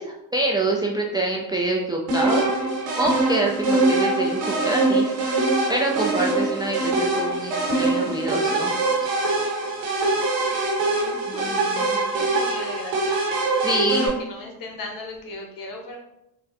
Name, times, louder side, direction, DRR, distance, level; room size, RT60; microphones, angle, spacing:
voice 1, 0.0-2.4 3.0-8.7 11.3-12.1 13.6-14.1, right 2 dB, 10° right, 0 dB, 0.3 m, -26 dB
sound 1, 2.1-14.1, right 2 dB, 85° right, 0.9 m, -23 dB
voice 2, 10.8-11.8 12.1-13.2 14.0-16.0, left 2 dB, 55° left, 1 dB, 0.9 m, -37 dB
3.7 x 2.2 x 2.6 m, 0.84 s
hypercardioid pair, 60°, 40 cm